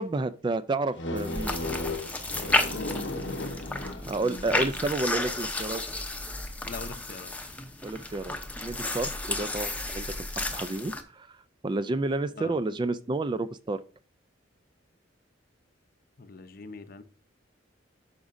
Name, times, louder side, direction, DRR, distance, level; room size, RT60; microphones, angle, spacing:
voice 1, 0.0-1.6 4.1-5.8 7.8-11.4 11.6-13.8, right 2 dB, 25° right, 0.3 m, -30 dB
sound 1, 1.0-5.0, left 2 dB, 85° left, 1.1 m, -35 dB
sound 2, 1.2-11.0, left 2 dB, 10° left, 0.7 m, -32 dB
voice 2, 6.7-7.3 12.4-12.5 16.2-17.0, left 4 dB, 50° left, 0.7 m, -41 dB
12.0 x 4.9 x 2.6 m
head